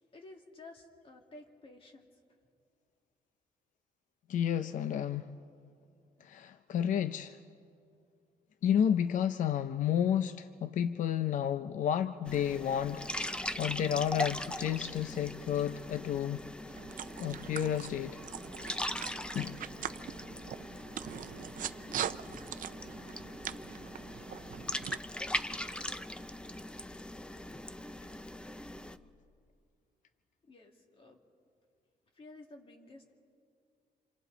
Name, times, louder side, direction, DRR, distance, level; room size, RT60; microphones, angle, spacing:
voice 1, 0.0-2.2 30.4-31.2 32.1-33.3, left 2 dB, 35° left, 2.4 m, -53 dB
voice 2, 4.3-5.3 6.2-7.4 8.6-13.1 13.3-16.4 17.2-18.2 19.3-19.6, left 9 dB, 55° left, 0.5 m, -31 dB
sound 1, 12.3-29.0, left 1 dB, 5° left, 0.6 m, -40 dB
sound 2, 16.7-25.0, right 10 dB, 55° right, 0.6 m, -42 dB
27.5 x 27.0 x 4.0 m
cardioid pair, 140°, 16 cm